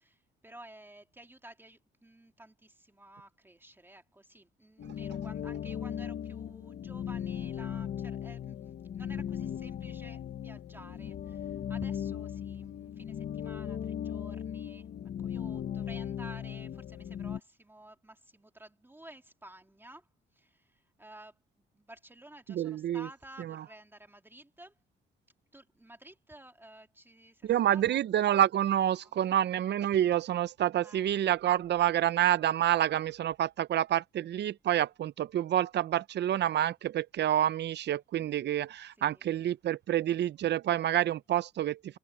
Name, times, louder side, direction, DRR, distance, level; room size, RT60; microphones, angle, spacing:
voice 1, 0.0-8.6 8.9-20.1 20.3-21.3 21.7-24.8 25.5-28.0 28.9-29.1 30.8-31.0 39.0-39.3, right 1 dB, 10° right, 2.4 m, -53 dB
sound 1, 4.8-17.4, left 9 dB, 55° left, 1.2 m, -37 dB
voice 2, 22.5-23.1 23.4-23.6 27.4-42.0, right 11 dB, 60° right, 0.6 m, -28 dB
cardioid pair, 90°, 20 cm